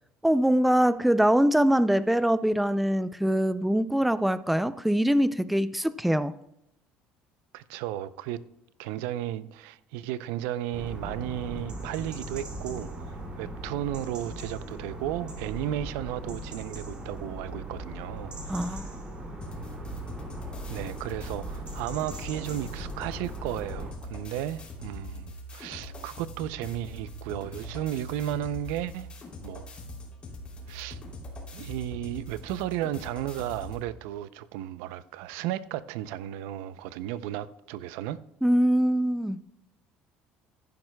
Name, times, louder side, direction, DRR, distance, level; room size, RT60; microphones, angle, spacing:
voice 1, 0.2-6.3 18.5-18.9 38.4-39.4, equal, ahead, 0.3 m, -23 dB
voice 2, 7.5-8.4 8.8-12.9 13.4-18.9 20.7-29.1 29.4-29.7 30.7-31.0 31.5-38.2, right 12 dB, 85° right, 0.5 m, -34 dB
sound 1, 10.7-23.9, right 1 dB, 30° right, 2.5 m, -39 dB
sound 2, 19.4-33.9, left 1 dB, 30° left, 2.9 m, -42 dB
15.0 x 10.5 x 2.2 m
cardioid pair, 135°, 4 cm